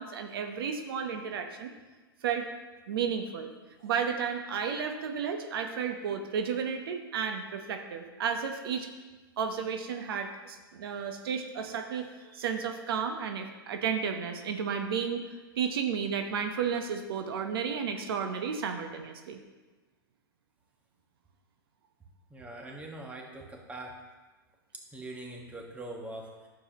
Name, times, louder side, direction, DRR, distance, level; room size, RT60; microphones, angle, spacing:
voice 1, 0.0-1.7 2.2-2.5 2.9-3.5 3.8-8.9 9.4-15.3 15.6-19.4, right 7 dB, 70° right, 6 dB, 0.9 m, -32 dB
voice 2, 22.3-24.0 24.9-26.5, right 2 dB, 10° right, 1 dB, 1.3 m, -42 dB
11.0 x 7.1 x 2.9 m, 1.3 s
hypercardioid pair, 125°, 13 cm